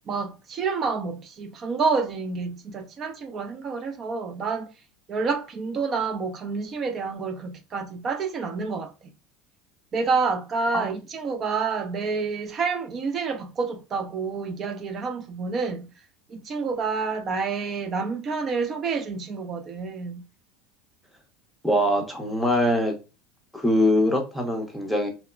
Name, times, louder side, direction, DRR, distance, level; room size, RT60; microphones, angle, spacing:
voice 1, 0.0-4.7 5.1-8.9 9.9-15.9 16.3-20.2, right 4 dB, 35° right, 0.4 m, -28 dB
voice 2, 21.6-23.0 23.5-25.1, left 1 dB, ahead, 0.7 m, -23 dB
3.0 x 2.0 x 2.2 m
supercardioid pair, 135°, 0 cm